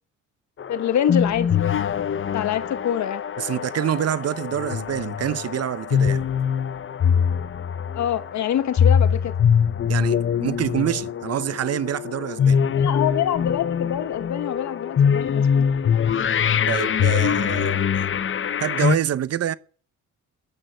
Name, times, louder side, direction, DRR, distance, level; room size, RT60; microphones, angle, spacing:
sound 1, 0.6-19.0, left 7 dB, 40° left, 0.9 m, -23 dB
voice 1, 0.7-1.5 2.3-3.2 7.9-9.3 12.7-15.7, left 10 dB, 65° left, 1.3 m, -25 dB
voice 2, 3.4-6.2 9.9-12.6 16.7-18.1 18.6-19.5, right 10 dB, 55° right, 0.8 m, -26 dB
12.5 x 10.5 x 8.1 m
cardioid pair, 90°, 30 cm